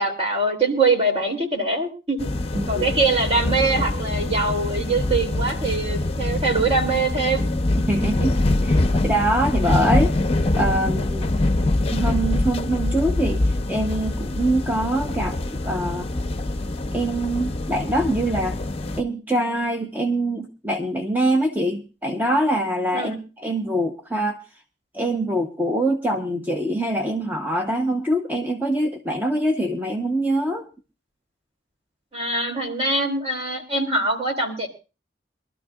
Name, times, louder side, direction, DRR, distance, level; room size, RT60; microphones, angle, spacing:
voice 1, 0.0-2.3 2.7-7.5 22.9-23.2 32.1-34.7, right 3 dB, 35° right, 2 dB, 3.1 m, -23 dB
sound 1, 2.2-19.0, left 2 dB, 35° left, 0.7 m, -24 dB
voice 2, 2.5-2.9 7.9-10.2 10.6-11.3 11.9-15.4 15.6-16.1 16.9-18.6 19.0-24.4 24.9-30.7, right 1 dB, 10° right, 2 dB, 0.9 m, -24 dB
23.5 x 12.5 x 2.4 m, 0.32 s
head